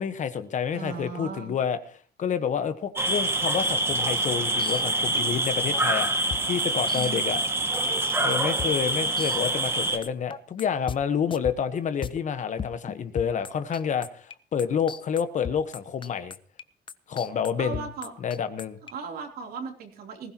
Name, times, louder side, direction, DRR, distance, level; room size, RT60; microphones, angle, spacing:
voice 1, 0.0-1.8 2.2-7.4 8.2-16.4 17.1-17.9 18.2-18.8, left 7 dB, 45° left, 11 dB, 1.2 m, -29 dB
voice 2, 0.7-1.6 6.9-7.3 17.6-18.1 18.9-20.3, right 5 dB, 65° right, 2 dB, 3.3 m, -37 dB
sound 1, 3.0-10.0, right 2 dB, 15° right, 1.9 m, -26 dB
sound 2, 4.6-9.8 10.0-11.0 11.3-12.2 12.6-14.3 14.6-18.9, left 7 dB, 30° left, 0.7 m, -37 dB
19.5 x 16.0 x 3.0 m, 0.43 s
cardioid pair, 110°, 17 cm